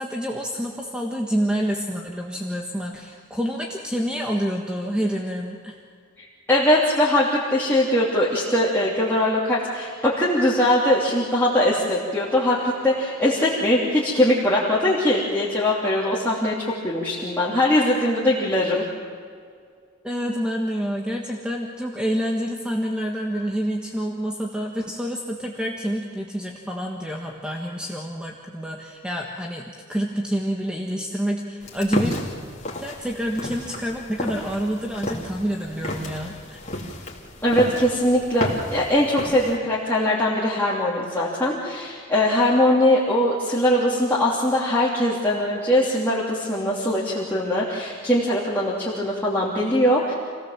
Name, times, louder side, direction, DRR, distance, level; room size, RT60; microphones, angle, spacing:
voice 1, 0.0-5.8 20.0-32.2 32.8-36.6, equal, 5° right, 0 dB, 1.5 m, -28 dB
voice 2, 6.2-18.8 37.4-50.1, left 1 dB, 10° left, -7 dB, 3.0 m, -21 dB
sound 1, 31.6-39.6, left 1 dB, 35° left, 3.0 m, -32 dB
28.0 x 17.5 x 7.4 m, 2.1 s
head